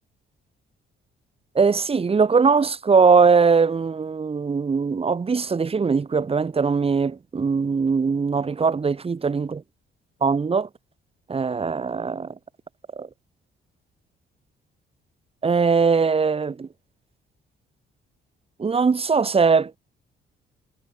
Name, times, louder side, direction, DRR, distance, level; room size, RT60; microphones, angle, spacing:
voice 1, 1.5-9.6 10.2-10.7 11.3-12.3 13.0-13.1 15.4-16.7 18.6-19.7, right 5 dB, 30° right, 1.4 m, -20 dB
cardioid pair, 90°, 20 cm